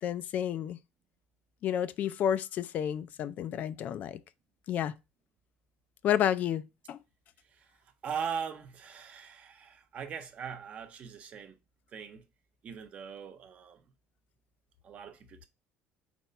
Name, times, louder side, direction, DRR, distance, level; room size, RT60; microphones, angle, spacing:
voice 1, 0.0-0.8 1.6-4.2 4.7-4.9 6.0-7.0, left 10 dB, 45° left, 0.4 m, -30 dB
voice 2, 8.0-11.6 11.9-12.2 12.6-13.8 14.8-15.5, right 7 dB, 40° right, 0.9 m, -40 dB
4.4 x 4.0 x 5.6 m
cardioid pair, 150°, 4 cm